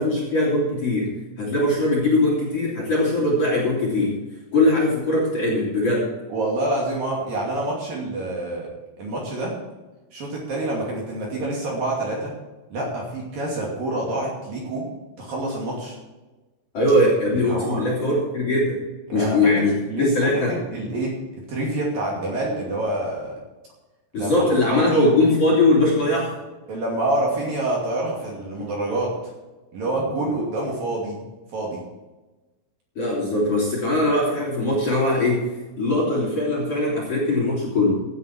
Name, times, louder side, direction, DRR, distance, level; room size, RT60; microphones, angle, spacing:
voice 1, 0.0-4.2 4.5-6.1 16.7-18.8 19.1-20.6 24.1-26.3 28.6-28.7 33.0-35.4 35.8-38.1, left 1 dB, 35° left, -4 dB, 3.7 m, -21 dB
voice 2, 6.3-8.7 9.0-9.5 10.1-12.3 12.7-14.9 15.2-16.0 17.3-17.9 19.1-21.1 21.5-23.3 24.1-24.3 24.7-25.0 26.7-29.2 29.7-31.2 31.5-31.8, right 2 dB, 50° right, -3 dB, 3.8 m, -27 dB
16.0 x 9.4 x 4.6 m, 1.1 s
omnidirectional pair, 5.8 m